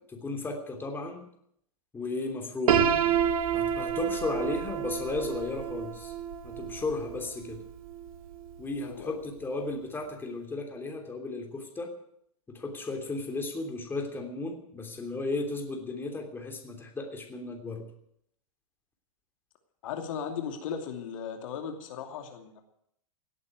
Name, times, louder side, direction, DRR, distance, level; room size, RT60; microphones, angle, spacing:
voice 1, 0.1-1.3 1.9-2.9 3.5-6.1 6.4-7.6 8.6-11.9 12.5-17.9, left 3 dB, 10° left, 3 dB, 3.1 m, -34 dB
Piano, 2.7-8.5, right 8 dB, 70° right, 1.7 m, -29 dB
voice 2, 8.8-9.2 19.8-22.6, left 7 dB, 60° left, 4 dB, 2.7 m, -37 dB
17.5 x 8.7 x 9.3 m, 0.71 s
hypercardioid pair, 120°, 19 cm